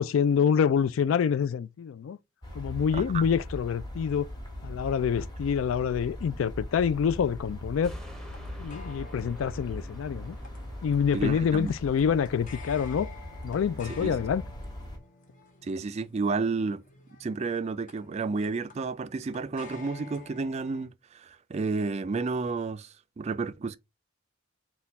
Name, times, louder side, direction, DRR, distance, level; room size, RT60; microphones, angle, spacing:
voice 1, 0.0-2.2 2.6-4.3 4.6-7.9 8.6-10.4 10.8-13.1 13.4-14.4, left 7 dB, 80° left, 0.3 m, -26 dB
sound 1, 2.4-15.0, equal, 20° left, 1.5 m, -40 dB
voice 2, 2.9-3.3 11.1-11.7 13.9-14.1 15.6-16.8 17.2-22.9 23.2-23.8, right 4 dB, 35° right, 0.3 m, -31 dB
sound 2, 6.5-20.9, left 4 dB, 40° left, 0.8 m, -52 dB
sound 3, 7.8-14.5 14.9-15.0, equal, 5° left, 0.8 m, -54 dB
4.2 x 2.3 x 4.0 m
head